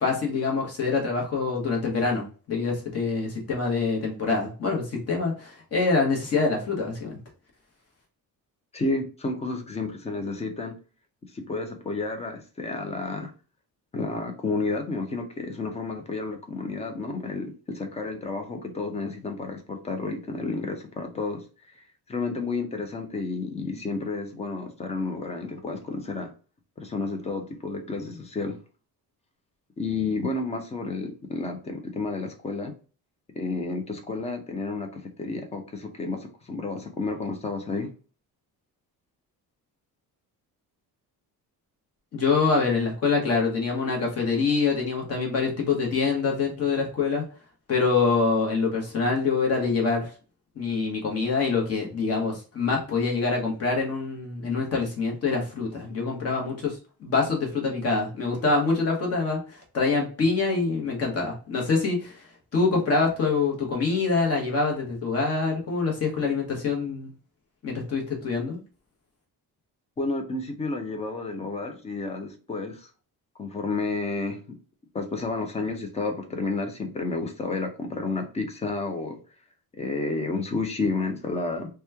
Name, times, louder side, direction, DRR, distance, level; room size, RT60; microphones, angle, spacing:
voice 1, 0.0-7.2 42.1-47.2 47.7-50.1 50.5-62.3 62.5-67.1 67.6-68.6, left 4 dB, 40° left, -1 dB, 1.0 m, -25 dB
voice 2, 8.7-10.7 11.3-13.3 13.9-21.4 22.1-26.3 26.8-28.6 29.8-32.7 33.3-37.9 70.0-72.9 73.4-74.4 74.9-79.2 79.8-81.7, left 3 dB, 20° left, 5 dB, 0.4 m, -31 dB
2.9 x 2.2 x 3.3 m, 0.36 s
cardioid pair, 175°, 38 cm